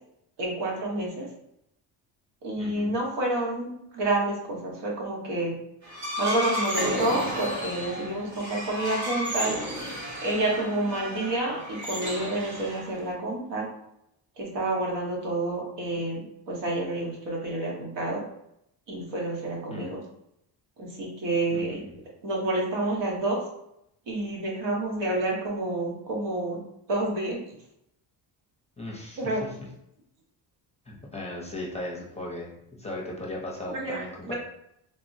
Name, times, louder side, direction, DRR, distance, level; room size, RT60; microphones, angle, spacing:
voice 1, 0.4-1.3 2.4-5.5 6.2-13.7 14.4-18.2 18.9-20.0 20.8-21.8 22.2-23.4 24.1-26.6 26.9-27.4 29.2-29.5 33.7-34.3, right 2 dB, 70° right, -2 dB, 1.1 m, -29 dB
voice 2, 2.6-2.9 19.7-19.9 21.5-21.8 28.8-29.5 30.9-34.3, left 1 dB, 15° left, -3 dB, 0.6 m, -37 dB
sound 1, 5.8-13.1, equal, 40° right, 0.9 m, -33 dB
3.4 x 2.0 x 2.6 m, 0.79 s
cardioid pair, 105°, 45 cm